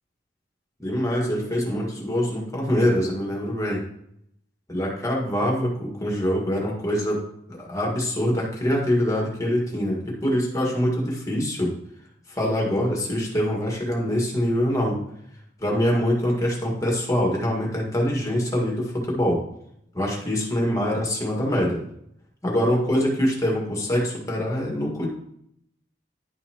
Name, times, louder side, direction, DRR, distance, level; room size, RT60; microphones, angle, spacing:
voice 1, 0.8-3.8 4.7-7.2 7.5-11.7 12.3-15.0 15.6-19.4 19.9-21.8 22.4-25.1, equal, 20° left, -2 dB, 1.9 m, -24 dB
10.5 x 5.6 x 3.0 m, 0.73 s
head